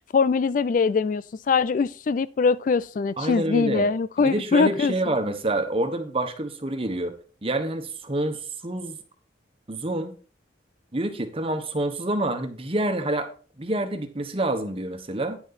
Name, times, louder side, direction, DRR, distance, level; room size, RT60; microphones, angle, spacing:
voice 1, 0.1-4.9, left 5 dB, 45° left, 0.3 m, -22 dB
voice 2, 3.2-3.9 4.2-9.0 9.7-10.1 10.9-13.3 13.6-15.4, right 1 dB, 30° right, 1.2 m, -27 dB
10.0 x 6.7 x 4.1 m
head